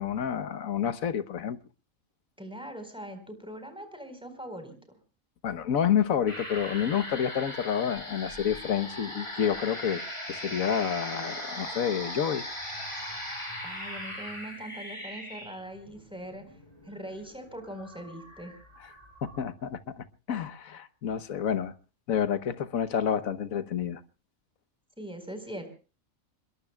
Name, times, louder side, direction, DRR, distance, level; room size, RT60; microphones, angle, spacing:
voice 1, 0.0-1.6 5.4-10.0 10.3-12.4 19.2-21.7 22.1-24.0, left 8 dB, 80° left, 13 dB, 1.4 m, -29 dB
voice 2, 2.4-5.0 13.6-16.4 16.8-18.5 25.0-25.7, right 1 dB, 5° right, 6 dB, 4.2 m, -41 dB
sound 1, 6.3-19.4, equal, 20° left, 5.5 m, -39 dB
26.5 x 22.0 x 2.3 m, 0.36 s
omnidirectional pair, 1.4 m